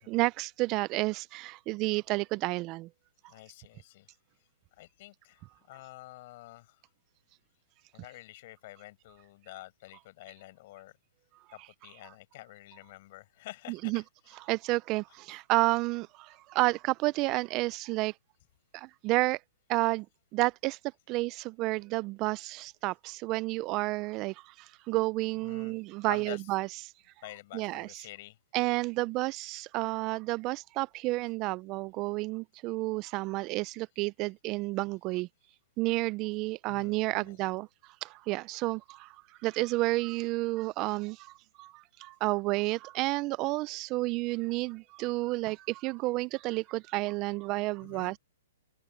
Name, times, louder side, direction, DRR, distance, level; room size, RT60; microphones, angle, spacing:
voice 1, 0.1-2.9 13.7-14.0 14.4-18.1 18.7-19.4 19.7-20.1 20.3-20.8 21.1-26.7 27.5-28.0 28.5-35.3 35.8-39.2 39.4-48.2, right 21 dB, 30° right, 0.4 m, -31 dB
voice 2, 3.3-4.1 4.8-6.8 7.9-11.0 11.5-14.6 15.1-15.4 25.4-25.8 26.1-26.5 27.2-28.4 36.7-37.4 40.9-41.0 47.8-48.2, left 18 dB, 45° left, 5.2 m, -49 dB
open air
hypercardioid pair, 145°, 0 cm